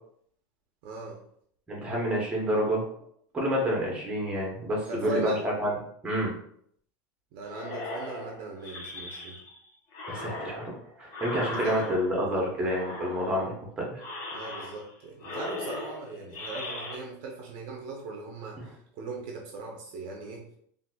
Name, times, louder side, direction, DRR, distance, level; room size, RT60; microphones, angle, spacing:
voice 1, 0.8-1.2 4.9-5.4 7.3-9.4 10.2-10.4 11.3-11.9 14.3-18.6 18.9-20.5, right 3 dB, 50° right, 0 dB, 0.6 m, -39 dB
voice 2, 1.7-2.8 3.3-5.7 6.0-6.3 10.1-10.7 11.0-13.9 14.2-14.3 18.6-18.7, equal, 10° right, -2 dB, 0.8 m, -28 dB
sound 1, 7.5-9.6 9.9-12.3 12.7-13.6 14.0-14.9 15.2-17.0, left 2 dB, 45° left, 0.8 m, -38 dB
3.9 x 2.5 x 2.2 m, 0.67 s
supercardioid pair, 155°, 11 cm